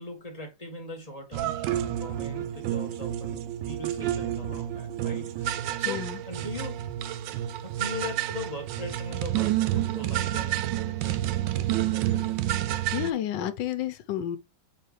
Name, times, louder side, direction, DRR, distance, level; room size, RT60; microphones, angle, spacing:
voice 1, 0.0-6.8 7.6-12.3, left 2 dB, 20° left, 1.5 m, -40 dB
sound 1, 1.3-13.1, right 12 dB, 85° right, 1.3 m, -29 dB
voice 2, 5.8-6.2 12.9-14.4, left 11 dB, 80° left, 1.4 m, -30 dB
8.4 x 3.9 x 3.2 m
omnidirectional pair, 1.9 m